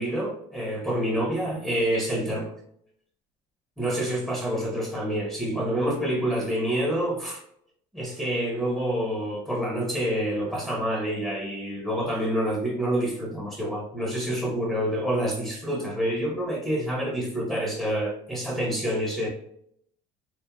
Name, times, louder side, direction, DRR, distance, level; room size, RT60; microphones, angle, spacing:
voice 1, 0.0-2.5 3.8-7.4 7.9-19.3, right 1 dB, ahead, -2 dB, 0.5 m, -27 dB
2.8 x 2.0 x 2.3 m, 0.72 s
cardioid pair, 135°, 16 cm